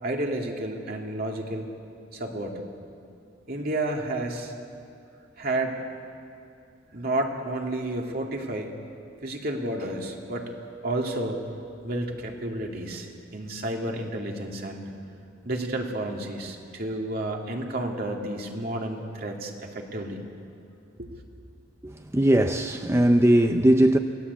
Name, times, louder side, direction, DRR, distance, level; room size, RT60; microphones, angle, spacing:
voice 1, 0.0-1.7 2.1-2.6 3.5-4.5 5.4-5.8 6.9-8.8 9.2-10.5 10.8-11.5 11.8-14.9 15.4-20.2 21.0-21.2, right 1 dB, 55° right, 2.7 m, -31 dB
voice 2, 21.8-24.0, right 1 dB, 15° right, 0.6 m, -20 dB
27.0 x 17.5 x 8.4 m
head